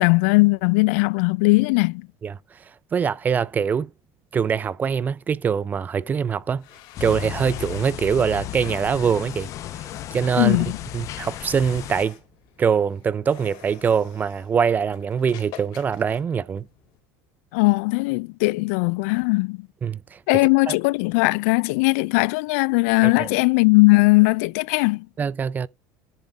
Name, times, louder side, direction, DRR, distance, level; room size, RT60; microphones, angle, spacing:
voice 1, 0.0-2.1 10.4-10.8 17.5-19.6 20.3-25.1, left 26 dB, 80° left, 0.4 m, -19 dB
voice 2, 2.9-3.9 4.3-6.6 7.0-9.5 9.8-10.6 10.9-12.2 12.6-16.7 19.8-20.2 20.7-20.8 23.0-23.3 25.2-25.7, right 7 dB, 20° right, 0.4 m, -23 dB
sound 1, 6.4-17.0, left 13 dB, 60° left, 2.5 m, -48 dB
sound 2, 6.9-12.0, left 13 dB, 45° left, 0.7 m, -34 dB
10.5 x 3.7 x 5.7 m
cardioid pair, 145°, 8 cm